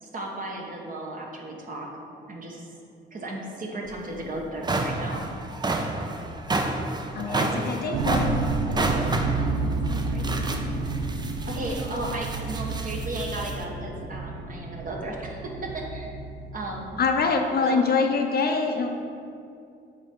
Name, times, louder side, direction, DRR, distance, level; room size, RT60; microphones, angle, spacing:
voice 1, 0.0-1.9 2.3-2.7 3.1-5.3 9.2-10.9 11.4-16.1 16.5-17.0 17.6-17.9, right 1 dB, 45° right, -1 dB, 1.3 m, -35 dB
sound 1, 3.9-4.0 4.4-13.6, right 2 dB, 20° right, 0.6 m, -30 dB
voice 2, 7.1-8.3 17.0-18.9, left 4 dB, 50° left, 4 dB, 0.7 m, -24 dB
sound 2, 7.9-16.9, right 3 dB, 90° right, 0.8 m, -30 dB
7.2 x 3.6 x 5.5 m, 2.5 s
cardioid pair, 90°, 20 cm